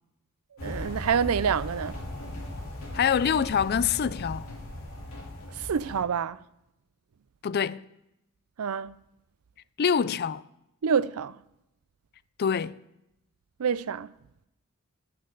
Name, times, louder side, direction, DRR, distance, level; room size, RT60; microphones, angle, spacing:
sound 1, 0.6-6.0, left 1 dB, 65° left, 3.8 m, -38 dB
voice 1, 0.6-2.0 5.7-6.4 8.6-8.9 10.8-11.3 13.6-14.1, right 7 dB, 80° right, 0.5 m, -27 dB
voice 2, 2.9-4.5 7.4-7.8 9.8-10.4 12.4-12.8, left 7 dB, 45° left, 0.4 m, -25 dB
21.0 x 8.5 x 3.9 m
head